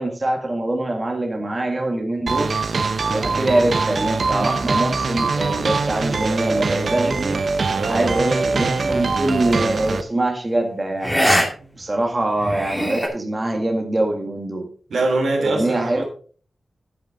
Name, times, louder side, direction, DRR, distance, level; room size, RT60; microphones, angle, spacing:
voice 1, 0.0-2.6 3.1-7.4 7.9-11.2 11.8-14.7 15.4-16.0, right 1 dB, 30° right, 2.0 m, -23 dB
sound 1, 2.3-10.0, right 4 dB, 60° right, 0.8 m, -23 dB
voice 2, 7.7-8.2 11.6-11.8 14.9-16.0, right 2 dB, 85° right, 2.9 m, -23 dB
sound 2, 9.4-9.7 11.0-11.5 11.8-11.9 12.4-13.1, equal, ahead, 2.4 m, -21 dB
10.0 x 8.8 x 3.9 m
wide cardioid pair, 115°, 0 cm